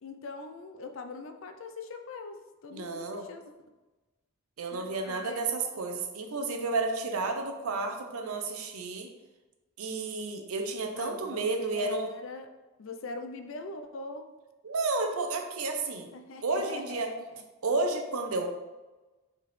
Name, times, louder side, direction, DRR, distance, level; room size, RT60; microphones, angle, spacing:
voice 1, 0.0-3.5 4.7-5.4 11.0-12.5 12.8-14.3 16.1-17.4, left 3 dB, 60° left, 7 dB, 0.4 m, -42 dB
voice 2, 2.7-3.2 4.6-9.1 9.8-12.1 14.6-16.1 16.4-17.1 17.6-18.5, right 3 dB, 80° right, 4 dB, 0.6 m, -31 dB
4.7 x 3.5 x 3.2 m, 1.2 s
head